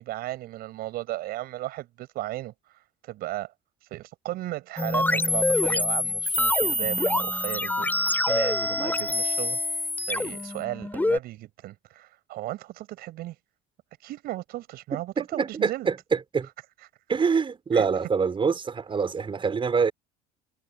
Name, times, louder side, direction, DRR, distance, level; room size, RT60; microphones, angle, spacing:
voice 1, 0.0-3.5 3.8-13.4 14.0-15.9 16.8-16.9 17.7-17.9, right 16 dB, 60° right, 7.9 m, -35 dB
sound 1, 4.8-11.2, left 2 dB, 10° left, 4.7 m, -25 dB
voice 2, 14.9-16.5 17.1-19.9, right 5 dB, 30° right, 6.6 m, -25 dB
hypercardioid pair, 75°, 18 cm